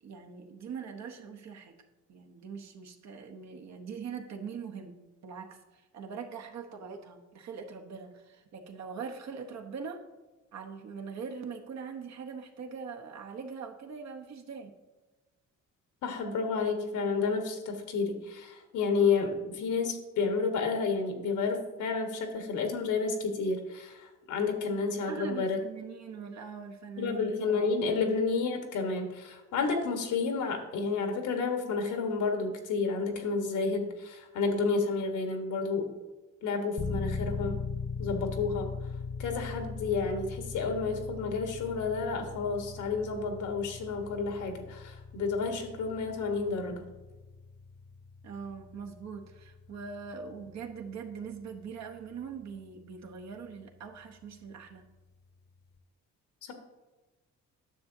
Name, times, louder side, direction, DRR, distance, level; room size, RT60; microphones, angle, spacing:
voice 1, 0.0-1.8 2.1-5.0 5.2-10.0 10.5-14.7 25.1-27.6 48.2-54.9, right 6 dB, 65° right, 3 dB, 1.0 m, -42 dB
voice 2, 16.0-25.6 27.0-35.9 36.4-37.6 38.0-38.7 39.2-46.9 56.4-56.5, left 4 dB, 80° left, 4 dB, 1.4 m, -30 dB
sound 1, 36.8-53.5, left 4 dB, 35° left, 0.9 m, -40 dB
9.9 x 6.6 x 2.7 m, 1.2 s
cardioid pair, 90°, 30 cm